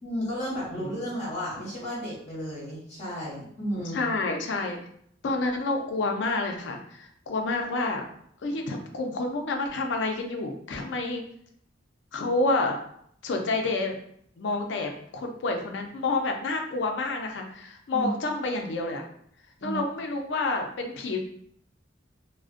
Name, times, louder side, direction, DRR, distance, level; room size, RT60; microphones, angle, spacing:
voice 1, 0.0-4.0 17.9-18.1 19.6-19.8, equal, 40° left, -6 dB, 0.7 m, -33 dB
voice 2, 3.9-4.8 5.2-8.0 8.4-11.2 12.1-12.8 13.2-14.0 14.4-19.0 19.6-21.2, left 2 dB, 70° left, 3 dB, 0.4 m, -29 dB
2.4 x 2.1 x 2.4 m, 0.67 s
head